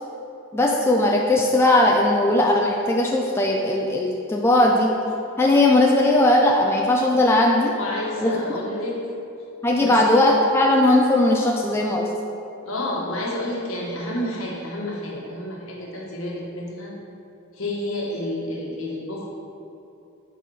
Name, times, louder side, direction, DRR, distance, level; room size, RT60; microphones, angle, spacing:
voice 1, 0.5-4.9 5.4-7.7 8.2-8.3 9.6-12.1, left 1 dB, 10° left, -1 dB, 0.3 m, -18 dB
voice 2, 7.7-9.0 9.8-10.0 12.6-16.9 17.5-19.3, left 1 dB, 70° left, -3 dB, 1.2 m, -30 dB
4.7 x 4.4 x 5.2 m, 2.9 s
head